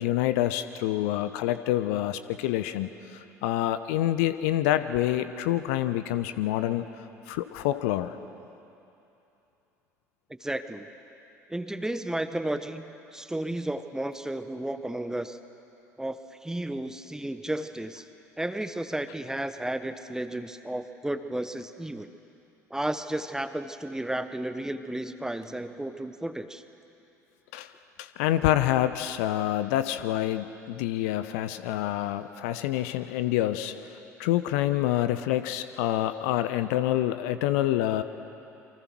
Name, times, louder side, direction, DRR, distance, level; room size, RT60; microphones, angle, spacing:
voice 1, 0.0-6.8 7.3-8.2 27.5-27.7 28.0-33.7 34.2-38.0, left 13 dB, 60° left, 11 dB, 0.9 m, -27 dB
voice 2, 10.4-10.9 11.5-15.4 16.0-16.2 16.4-18.0 18.4-22.1 22.7-26.6, right 1 dB, 5° right, 10 dB, 1.2 m, -33 dB
28.5 x 24.5 x 6.1 m, 2.9 s
figure-of-eight pair, 60°, 9 cm